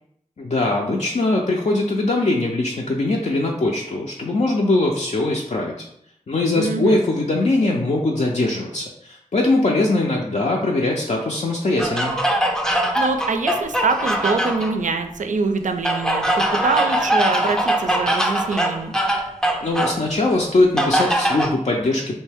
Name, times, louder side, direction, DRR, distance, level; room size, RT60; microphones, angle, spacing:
voice 1, 0.4-5.7 6.3-12.1 19.6-22.1, left 2 dB, 60° left, -2 dB, 0.5 m, -21 dB
voice 2, 6.6-7.0 13.0-18.9, right 4 dB, 70° right, 6 dB, 0.4 m, -24 dB
sound 1, 11.8-14.7 15.8-20.0 20.8-21.5, right 1 dB, 5° left, 0.5 m, -21 dB
3.2 x 2.6 x 3.4 m, 0.73 s
wide cardioid pair, 85°, 13 cm